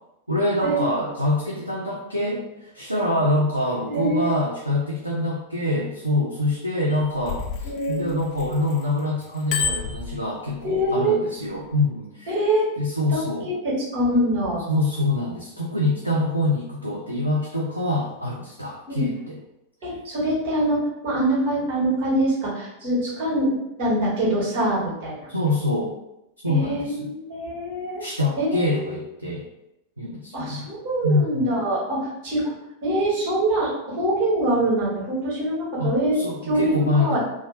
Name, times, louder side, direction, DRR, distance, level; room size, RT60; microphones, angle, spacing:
voice 1, 0.3-12.4 12.8-13.5 14.7-19.4 25.3-25.9 26.4-27.1 28.0-29.4 30.0-30.7 31.0-31.6 35.8-37.2, left 1 dB, 85° right, -4 dB, 0.4 m, -25 dB
voice 2, 3.9-4.3 7.6-8.1 10.6-11.2 12.3-12.7 13.1-14.6 18.9-19.1 19.8-25.3 26.4-28.0 28.4-29.0 30.3-32.5 32.8-36.2 36.5-37.2, right 1 dB, 45° right, -6 dB, 1.5 m, -24 dB
Bicycle bell, 6.9-8.8 9.2-10.9 11.5-11.7, left 5 dB, 40° left, 0.3 m, -30 dB
2.7 x 2.0 x 3.1 m, 0.87 s
figure-of-eight pair, 90°, 0 cm